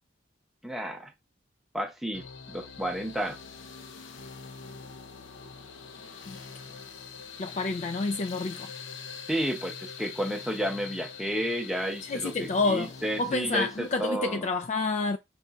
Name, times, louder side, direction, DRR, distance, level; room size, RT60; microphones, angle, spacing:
voice 1, 0.6-1.1 1.7-3.4 9.3-14.5, equal, ahead, 0.7 m, -31 dB
sound 1, 2.1-14.1, left 5 dB, 90° left, 0.7 m, -44 dB
voice 2, 7.4-8.7 12.0-12.9 13.2-15.2, left 3 dB, 40° left, 0.3 m, -29 dB
5.4 x 3.9 x 2.3 m
head